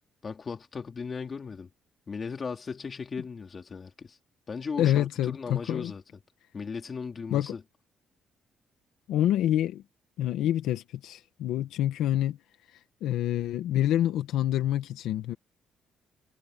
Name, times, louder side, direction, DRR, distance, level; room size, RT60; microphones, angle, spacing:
voice 1, 0.2-1.7 2.1-4.2 4.5-6.0 6.5-7.6, left 5 dB, 40° left, 3.1 m, -37 dB
voice 2, 4.8-5.9 7.3-7.5 9.1-9.8 10.2-12.4 13.0-15.3, left 12 dB, 85° left, 1.7 m, -27 dB
cardioid pair, 90°, 0 cm